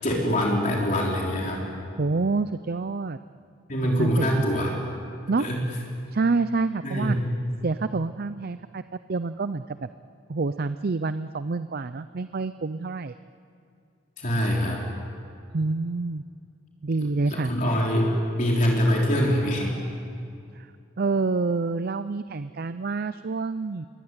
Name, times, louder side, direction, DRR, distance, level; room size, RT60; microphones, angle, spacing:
voice 1, 0.0-1.6 3.7-4.7 5.4-5.6 6.8-7.2 14.2-14.8 17.3-18.1 18.4-19.8, equal, 40° left, -2 dB, 3.8 m, -24 dB
voice 2, 2.0-3.2 3.8-4.4 5.3-5.5 6.1-7.2 7.6-9.9 10.3-13.1 15.5-16.2 16.8-17.5 20.5-20.7 21.0-23.9, right 3 dB, 50° right, 12 dB, 0.5 m, -27 dB
26.0 x 22.0 x 9.8 m, 2.4 s
head